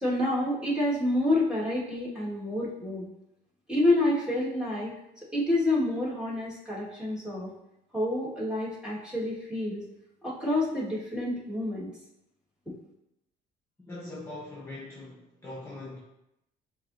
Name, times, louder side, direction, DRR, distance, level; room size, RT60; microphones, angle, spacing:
voice 1, 0.0-3.1 3.7-5.0 5.3-7.5 7.9-9.8 10.2-11.9 12.7-12.8, left 1 dB, 5° right, -7 dB, 1.8 m, -28 dB
voice 2, 13.8-16.0, left 2 dB, 15° left, -5 dB, 1.1 m, -41 dB
6.9 x 2.9 x 2.7 m, 0.86 s
cardioid pair, 110°, 17 cm